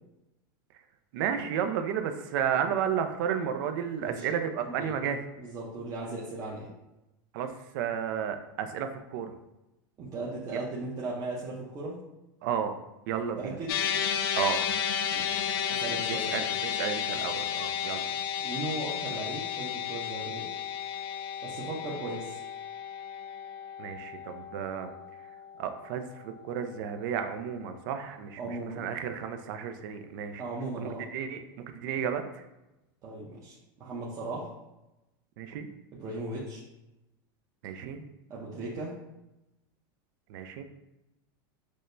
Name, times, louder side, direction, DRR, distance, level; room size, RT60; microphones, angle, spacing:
voice 1, 1.1-5.2 7.3-9.3 10.5-10.6 12.4-12.7 13.1-13.6 14.4-14.6 16.3-18.1 23.8-24.9 25.6-30.4 30.8-31.4 31.7-32.4 35.4-35.7 37.6-38.0 40.3-40.6, right 8 dB, 60° right, 8 dB, 0.4 m, -32 dB
voice 2, 5.4-6.7 10.0-12.0 13.4-13.8 15.1-16.5 18.1-18.2 18.4-20.5 21.4-22.4 28.4-28.8 30.4-31.1 33.0-34.5 35.9-36.6 38.3-38.9, right 2 dB, 30° right, -6 dB, 0.7 m, -37 dB
sound 1, 13.7-26.1, left 8 dB, 85° left, 0.4 m, -33 dB
6.1 x 2.1 x 2.6 m, 0.96 s
supercardioid pair, 140°, 12 cm